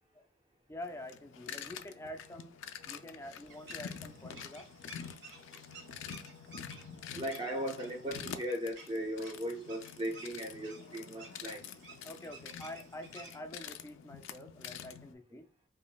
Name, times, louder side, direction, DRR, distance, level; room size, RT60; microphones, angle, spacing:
voice 1, 0.7-2.6 2.8-4.7 12.0-15.5, left 1 dB, 15° left, 0.4 m, -47 dB
sound 1, 0.8-15.1, left 7 dB, 80° left, 0.4 m, -47 dB
sound 2, 3.5-13.4, right 3 dB, 60° right, 1.4 m, -55 dB
voice 2, 5.8-11.7, equal, 25° right, 0.8 m, -39 dB
5.1 x 2.6 x 2.2 m
head